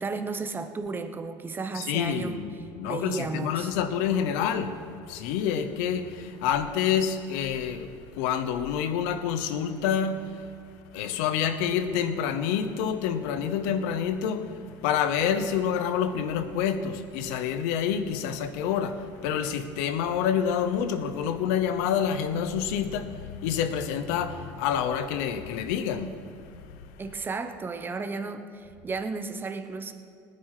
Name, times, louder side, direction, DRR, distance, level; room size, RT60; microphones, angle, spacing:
voice 1, 0.0-2.4 2.8-3.7 27.0-29.9, right 4 dB, 25° right, 1.1 m, -33 dB
voice 2, 1.7-10.5 10.9-26.7, left 8 dB, 85° left, 0.9 m, -28 dB
19.5 x 9.9 x 5.0 m
supercardioid pair, 110°, 9 cm